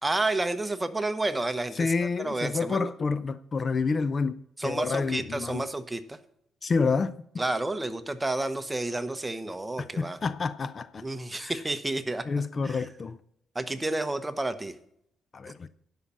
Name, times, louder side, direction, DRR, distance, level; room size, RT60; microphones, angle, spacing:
voice 1, 0.0-1.9 2.2-2.9 4.6-6.2 7.4-10.2 11.0-12.2 12.6-12.8 13.5-14.7, right 2 dB, 15° right, 0.9 m, -30 dB
voice 2, 1.7-5.7 6.6-7.1 9.8-11.0 11.3-11.5 12.3-13.2 15.3-15.7, left 4 dB, 40° left, 0.5 m, -28 dB
11.5 x 5.5 x 7.4 m
cardioid pair, 90°, 0 cm